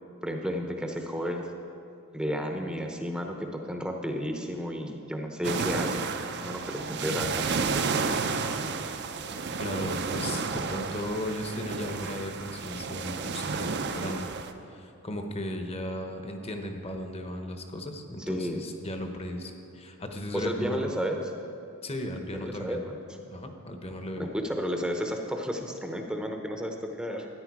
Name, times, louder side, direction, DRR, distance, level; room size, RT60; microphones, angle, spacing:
voice 1, 0.2-1.5 2.1-6.1 6.4-7.6 18.2-18.6 20.3-21.3 22.3-23.0 24.2-27.3, equal, 5° right, 3 dB, 0.7 m, -32 dB
sound 1, 5.4-14.5, right 4 dB, 50° right, 0.6 m, -31 dB
voice 2, 9.6-14.3 14.7-20.8 21.8-22.8 23.3-24.3, left 1 dB, 30° left, 5 dB, 0.9 m, -36 dB
13.5 x 9.9 x 4.7 m, 2.6 s
head